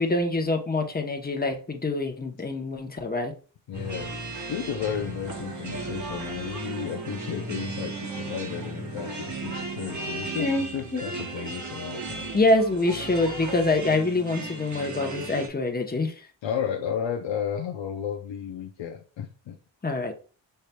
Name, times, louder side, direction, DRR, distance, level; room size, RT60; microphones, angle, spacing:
voice 1, 0.0-3.3 10.4-10.7 10.9-11.0 12.3-16.1 19.8-20.1, left 2 dB, 20° left, 4 dB, 0.8 m, -25 dB
voice 2, 3.7-12.3 16.4-19.6, left 8 dB, 90° left, 2 dB, 0.6 m, -33 dB
sound 1, 3.7-15.5, right 3 dB, 40° right, 1.1 m, -37 dB
sound 2, 3.7-10.3, right 2 dB, 55° right, 1.3 m, -39 dB
5.5 x 3.1 x 2.2 m, 0.37 s
cardioid pair, 55°, 44 cm